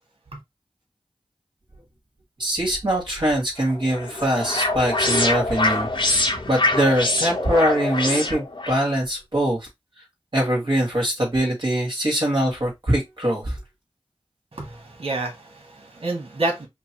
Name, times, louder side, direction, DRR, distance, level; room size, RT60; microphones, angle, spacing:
voice 1, 2.4-5.9 6.5-9.6 10.3-13.6, right 1 dB, 55° right, 2.2 m, -22 dB
sound 1, 3.6-8.8, left 2 dB, 55° left, 1.1 m, -24 dB
voice 2, 14.5-16.7, right 2 dB, 70° right, 1.5 m, -29 dB
5.2 x 2.3 x 3.0 m
wide cardioid pair, 45°, 10 cm